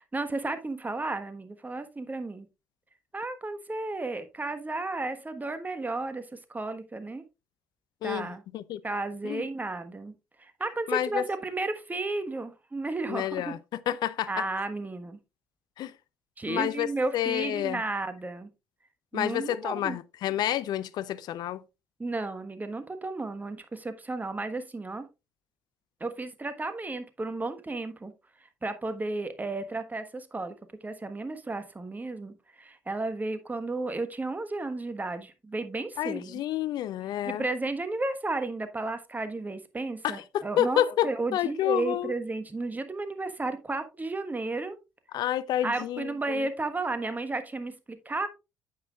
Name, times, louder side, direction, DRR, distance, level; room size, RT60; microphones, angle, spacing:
voice 1, 0.0-2.5 3.1-7.2 8.0-8.4 8.8-10.1 10.4-13.5 14.3-15.2 16.4-18.5 19.1-20.0 22.0-25.1 26.0-28.1 28.4-30.5 30.8-36.4 37.2-44.8 45.6-48.3, right 2 dB, 20° right, 1.3 m, -33 dB
voice 2, 8.0-8.8 9.2-9.4 10.9-11.2 13.1-14.5 15.8-15.9 16.5-16.9 17.1-17.8 19.1-21.6 36.0-37.4 40.0-42.1 45.1-46.5, left 12 dB, 60° left, 0.6 m, -29 dB
9.3 x 8.2 x 2.4 m
hypercardioid pair, 50°, 8 cm